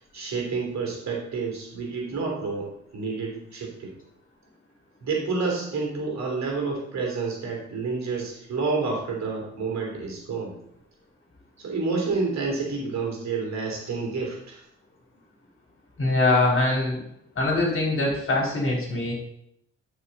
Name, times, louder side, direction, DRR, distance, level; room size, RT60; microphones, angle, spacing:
voice 1, 0.1-3.9 5.0-10.5 11.6-14.6, right 4 dB, 50° right, 0 dB, 3.2 m, -29 dB
voice 2, 16.0-17.0 17.4-19.1, left 2 dB, 35° left, -2 dB, 4.0 m, -23 dB
11.0 x 5.8 x 4.2 m, 0.74 s
figure-of-eight pair, 45°, 35 cm